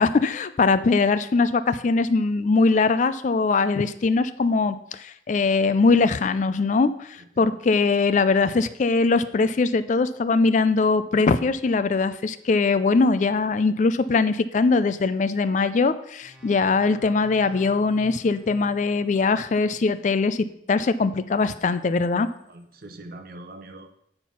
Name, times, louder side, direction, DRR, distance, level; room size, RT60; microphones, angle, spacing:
voice 1, 0.0-22.3, left 4 dB, 40° left, 13 dB, 0.4 m, -21 dB
sound 1, 16.2-19.8, left 1 dB, 5° right, 1.3 m, -48 dB
voice 2, 22.4-23.9, right 2 dB, 55° right, 8 dB, 0.8 m, -42 dB
9.1 x 4.4 x 5.7 m, 0.74 s
head